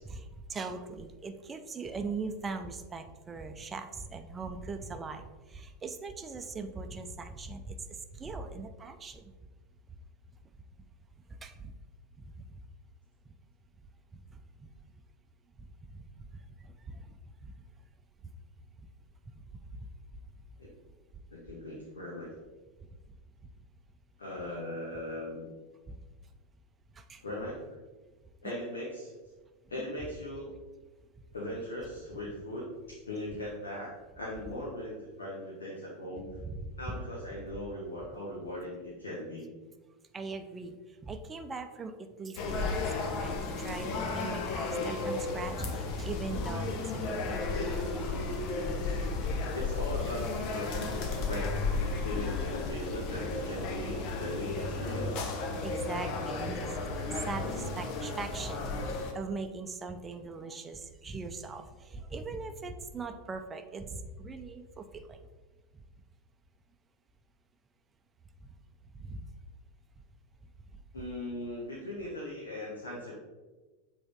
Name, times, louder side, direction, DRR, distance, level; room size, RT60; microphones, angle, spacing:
voice 1, 0.0-9.3 11.3-11.8 12.2-12.6 13.3-13.4 14.1-14.7 15.6-17.6 19.3-19.9 25.9-26.0 26.9-27.2 28.4-28.6 29.8-29.9 36.4-37.0 40.1-48.1 55.6-65.2 65.7-65.8 68.9-69.2, right 3 dB, 25° right, 7 dB, 0.6 m, -41 dB
voice 2, 21.3-22.3 24.2-25.4 27.2-27.7 28.4-29.1 29.7-30.5 31.3-33.9 34.2-36.3 36.8-39.5 49.5-51.0 51.3-51.5 52.0-55.3 70.9-73.1, left 1 dB, 85° left, -4 dB, 1.3 m, -39 dB
sound 1, 42.4-59.1, left 3 dB, 50° left, 0.9 m, -34 dB
7.7 x 3.6 x 3.6 m, 1.2 s
hypercardioid pair, 85°, 0 cm